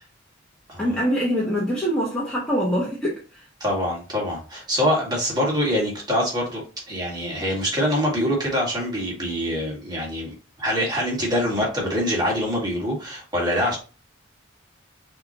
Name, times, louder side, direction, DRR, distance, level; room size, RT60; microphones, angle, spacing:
voice 1, 0.8-3.4, equal, 5° left, 1.0 m, -24 dB
voice 2, 3.6-13.8, equal, 20° right, 1.8 m, -24 dB
5.7 x 3.0 x 2.9 m
head